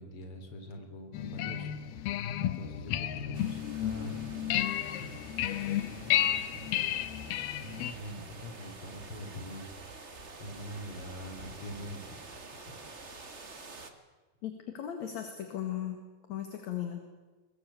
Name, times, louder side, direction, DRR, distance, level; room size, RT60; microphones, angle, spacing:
voice 1, 0.0-4.2 4.8-5.2 5.7-6.9 7.3-10.1 10.4-12.8, equal, 35° left, 5 dB, 4.1 m, -45 dB
sound 1, 1.1-7.9, left 12 dB, 85° left, 2.9 m, -32 dB
sound 2, 3.3-13.9, right 3 dB, 40° right, 0.9 m, -48 dB
voice 2, 14.4-16.0 16.3-17.0, left 10 dB, 50° left, 5 dB, 3.0 m, -37 dB
22.0 x 22.0 x 8.6 m, 1.3 s
omnidirectional pair, 4.4 m